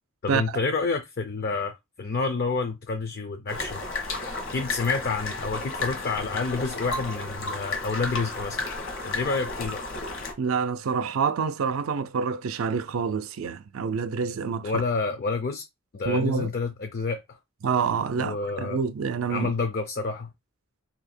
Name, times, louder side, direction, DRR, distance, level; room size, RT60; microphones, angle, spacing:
voice 1, 0.2-3.8 4.5-8.6 9.0-9.9 14.6-15.6 15.9-17.4 18.2-18.8 19.3-20.3, left 4 dB, 50° left, 0.5 m, -29 dB
sound 1, 3.5-10.3, left 3 dB, 65° left, 1.2 m, -33 dB
voice 2, 10.4-14.7 16.1-16.5 17.6-19.5, right 6 dB, 75° right, 0.4 m, -27 dB
2.8 x 2.8 x 4.2 m
head